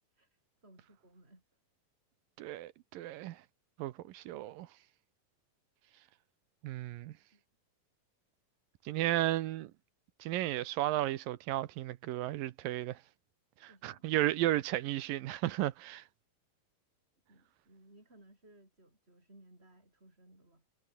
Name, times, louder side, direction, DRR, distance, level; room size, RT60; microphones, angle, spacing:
voice 1, 0.1-1.4 7.3-7.4 13.7-14.2 17.3-20.6, right 1 dB, 15° right, 8.2 m, -61 dB
voice 2, 2.4-3.4 3.8-4.7 6.6-7.1 8.9-9.7 10.2-13.0 13.6-16.0, right 14 dB, 75° right, 2.5 m, -34 dB
omnidirectional pair, 4.2 m